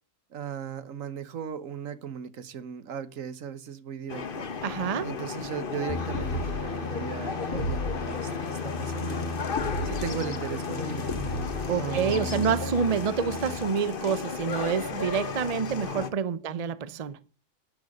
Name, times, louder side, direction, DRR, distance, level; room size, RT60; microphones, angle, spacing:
voice 1, 0.3-4.5 5.0-9.4 9.8-11.1 11.7-12.5 16.5-16.7, right 8 dB, 85° right, 1.4 m, -37 dB
sound 1, 4.1-16.1, left 5 dB, 45° left, 1.2 m, -34 dB
voice 2, 4.6-5.1 11.7-17.2, right 6 dB, 35° right, 0.7 m, -28 dB
sound 2, 5.9-13.6, left 2 dB, 10° left, 3.1 m, -37 dB
sound 3, 6.1-6.7 7.5-8.1 9.6-10.1 11.1-11.7, left 1 dB, 80° left, 2.2 m, -32 dB
11.5 x 10.0 x 5.3 m
omnidirectional pair, 1.3 m